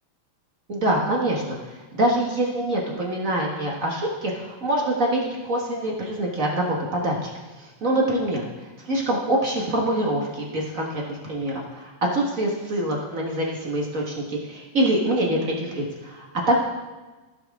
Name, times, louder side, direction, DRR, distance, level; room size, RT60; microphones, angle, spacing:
voice 1, 0.7-1.6 1.9-7.3 7.8-8.4 8.8-16.6, right 1 dB, 45° right, -2 dB, 1.0 m, -25 dB
16.5 x 6.2 x 3.5 m, 1.2 s
omnidirectional pair, 3.3 m